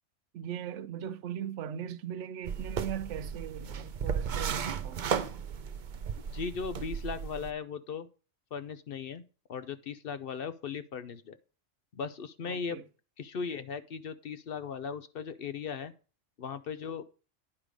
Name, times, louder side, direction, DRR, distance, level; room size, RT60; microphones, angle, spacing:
voice 1, 0.3-5.0 12.4-12.8, right 9 dB, 75° right, 0.9 m, -39 dB
sound 1, 2.5-7.5, right 7 dB, 50° right, 0.6 m, -35 dB
voice 2, 6.3-8.1 8.5-9.2 9.5-11.3 11.9-12.8 13.2-15.9 16.4-17.0, left 6 dB, 60° left, 0.8 m, -37 dB
9.8 x 4.9 x 5.0 m
omnidirectional pair, 1.2 m